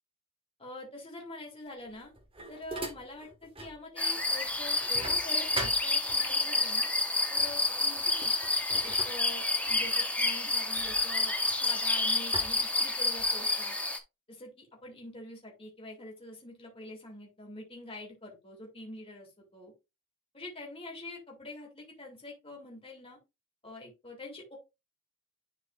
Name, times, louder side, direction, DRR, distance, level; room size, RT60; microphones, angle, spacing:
voice 1, 0.6-2.1 2.5-6.9 7.3-8.3 8.8-13.8 14.3-19.7 20.3-23.2 23.6-24.6, left 2 dB, 25° left, -1 dB, 2.5 m, -45 dB
sound 1, 1.8-3.8 4.2-6.5 7.4-7.6 7.9-11.8 12.3-13.5, right 2 dB, 25° right, 1.5 m, -43 dB
sound 2, 4.0-14.0, left 2 dB, 5° left, 0.8 m, -29 dB
10.5 x 4.6 x 2.4 m, 0.24 s
head